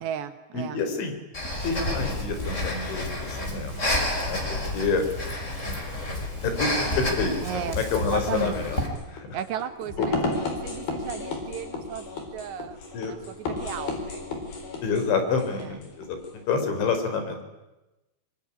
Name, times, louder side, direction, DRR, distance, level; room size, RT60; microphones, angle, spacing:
voice 1, 0.0-0.8 7.4-8.7 9.3-14.2 15.6-15.8, right 9 dB, 70° right, 11 dB, 3.0 m, -35 dB
voice 2, 0.5-1.2 1.6-3.7 4.2-5.0 6.4-8.8 9.1-9.4 12.9-13.1 14.8-16.2 16.5-17.4, left 4 dB, 70° left, 7 dB, 6.2 m, -28 dB
Breathing, 1.3-8.9, left 1 dB, 15° left, 4.3 m, -30 dB
sound 1, 8.3-16.4, left 3 dB, 50° left, 5.8 m, -34 dB
25.0 x 22.5 x 9.9 m, 1.0 s
omnidirectional pair, 5.6 m